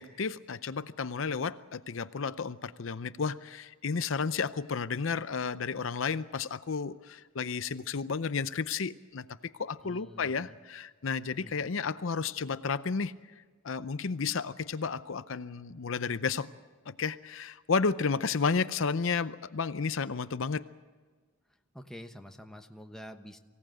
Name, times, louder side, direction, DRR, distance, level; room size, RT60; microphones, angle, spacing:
voice 1, 0.0-16.5 16.9-20.7, left 5 dB, 65° left, 13 dB, 0.6 m, -32 dB
voice 2, 9.8-10.6 11.4-11.7 21.7-23.4, equal, ahead, 4 dB, 1.1 m, -47 dB
23.5 x 17.0 x 7.7 m, 1.4 s
head